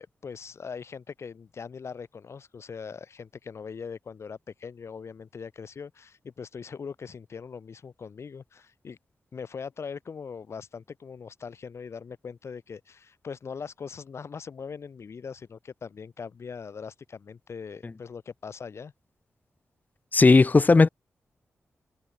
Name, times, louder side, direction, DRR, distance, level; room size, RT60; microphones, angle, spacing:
voice 1, 0.0-9.0 9.3-18.9, left 6 dB, 65° left, 3.6 m, -41 dB
voice 2, 20.1-20.9, left 3 dB, 35° left, 0.7 m, -16 dB
cardioid pair, 60°, 5 cm